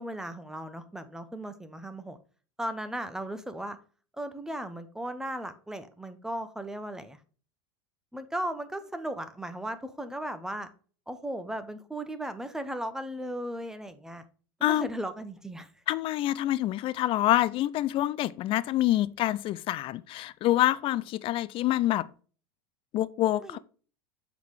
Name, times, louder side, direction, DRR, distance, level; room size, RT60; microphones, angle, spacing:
voice 1, 0.0-2.2 2.6-3.8 4.2-7.2 8.1-10.7 11.1-14.2 14.6-15.7 23.4-23.6, right 1 dB, 5° right, 0.8 m, -36 dB
voice 2, 15.9-22.0 22.9-23.6, left 14 dB, 40° left, 0.4 m, -26 dB
7.1 x 4.1 x 4.7 m
supercardioid pair, 115°, 13 cm